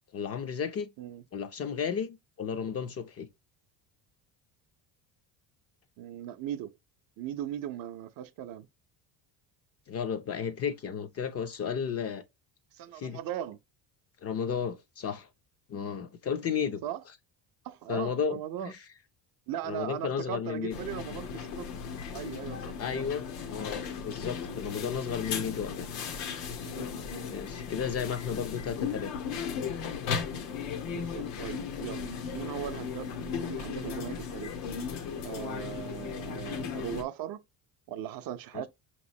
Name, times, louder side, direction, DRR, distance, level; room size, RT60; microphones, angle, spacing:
voice 1, 0.1-0.9 1.3-3.3 9.9-12.2 12.9-13.2 14.2-15.3 15.7-16.8 17.9-18.8 19.6-20.7 22.8-25.9 27.3-29.1 38.5-38.7, left 7 dB, 35° left, 0.4 m, -33 dB
voice 2, 6.0-6.7 7.2-8.7 12.7-13.6 16.8-17.0 17.6-18.7 19.5-21.7 22.1-23.0 24.5-24.6 25.7-25.9 26.6-27.3 30.9-34.6 35.2-37.4 37.9-38.7, right 11 dB, 50° right, 0.5 m, -39 dB
sound 1, 20.7-37.0, left 6 dB, 90° left, 1.0 m, -36 dB
5.5 x 3.0 x 2.6 m
cardioid pair, 120°, 46 cm